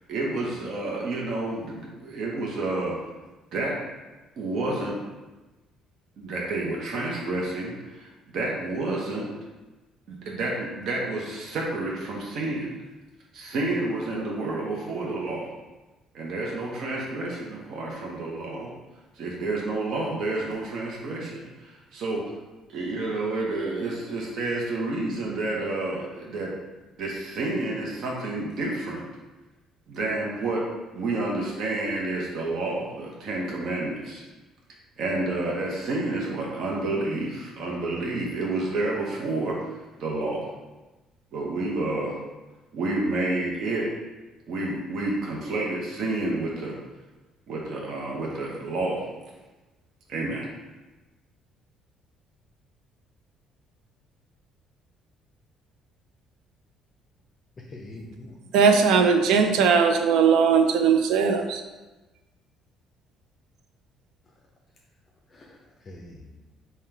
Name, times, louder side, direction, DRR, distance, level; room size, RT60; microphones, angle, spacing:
voice 1, 0.1-3.0 3.5-3.8 4.4-5.0 6.2-9.3 10.1-12.7 13.3-15.5 16.1-18.7 19.2-22.2 22.7-26.5 27.0-29.0 29.9-34.2 35.0-39.6 40.0-40.4 41.3-42.1 42.7-43.9 44.5-46.8 47.5-49.0 50.1-50.5, right 2 dB, 60° right, -3 dB, 0.8 m, -29 dB
voice 2, 57.6-58.4 65.3-66.4, left 1 dB, 30° left, -1 dB, 0.4 m, -44 dB
voice 3, 58.5-61.6, right 6 dB, 80° right, 6 dB, 0.4 m, -19 dB
3.7 x 2.2 x 4.4 m, 1.1 s
cardioid pair, 125°, 0 cm